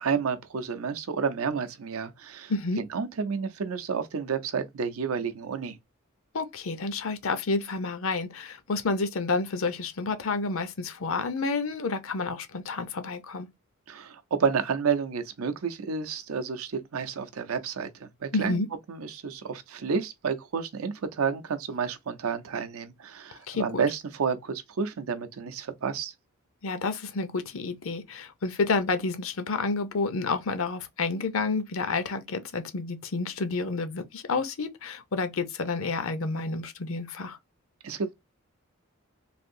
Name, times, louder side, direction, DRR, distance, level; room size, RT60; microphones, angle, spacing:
voice 1, 0.0-5.8 13.9-18.6 18.9-26.1 37.8-38.1, right 6 dB, 75° right, 0.6 m, -30 dB
voice 2, 2.5-2.8 6.3-13.5 18.3-18.7 23.5-23.8 26.6-37.4, left 3 dB, 65° left, 0.6 m, -30 dB
3.4 x 2.7 x 2.5 m
head